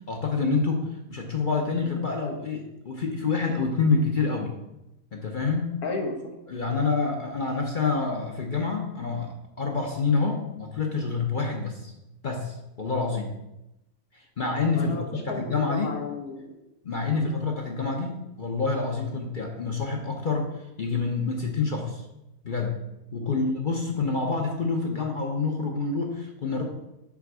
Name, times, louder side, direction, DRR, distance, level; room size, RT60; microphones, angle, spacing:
voice 1, 0.1-4.5 5.1-5.8 6.5-9.3 9.6-11.9 12.2-13.3 14.1-15.9 16.8-20.5 20.8-22.0 22.4-22.8 23.1-26.6, left 4 dB, 45° left, 1 dB, 0.8 m, -27 dB
voice 2, 5.8-6.3 6.7-6.8 14.8-16.5 17.1-17.3 23.2-23.5, left 3 dB, 75° left, 1 dB, 1.7 m, -34 dB
5.9 x 4.4 x 6.1 m, 0.92 s
omnidirectional pair, 1.6 m